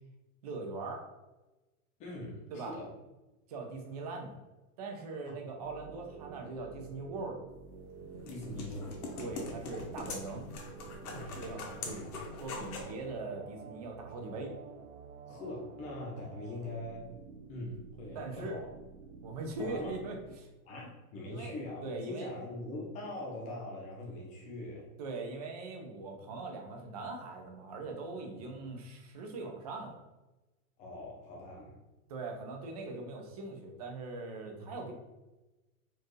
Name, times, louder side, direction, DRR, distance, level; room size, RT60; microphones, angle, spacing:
voice 1, 0.4-1.1 2.5-2.8 3.5-4.3 4.8-7.4 8.3-8.6 9.2-10.5 11.1-12.1 12.4-14.6 18.1-18.6 19.2-20.5 21.3-21.5 21.8-22.3 25.0-30.0 32.1-34.9, right 3 dB, 30° right, 2 dB, 0.4 m, -41 dB
voice 2, 2.0-2.9 8.3-8.9 11.1-12.2 15.3-17.1 17.5-18.7 19.6-20.0 20.6-24.9 30.8-31.8 34.6-34.7, left 1 dB, 15° left, -3 dB, 0.7 m, -42 dB
sound 1, 5.6-20.4, right 6 dB, 75° right, 0.5 m, -51 dB
sound 2, 7.7-13.0, left 3 dB, 75° left, 1.1 m, -43 dB
4.4 x 2.5 x 3.1 m, 1.1 s
supercardioid pair, 160°, 45 cm